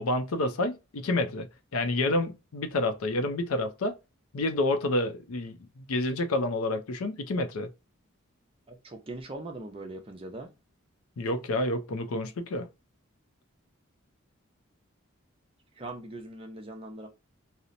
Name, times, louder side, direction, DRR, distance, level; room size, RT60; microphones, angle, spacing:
voice 1, 0.0-1.5 1.7-4.0 4.3-7.7 11.2-12.7, left 2 dB, 90° left, 0.5 m, -29 dB
voice 2, 8.7-10.5 15.8-17.1, right 2 dB, 25° right, 0.6 m, -41 dB
2.8 x 2.0 x 2.4 m
head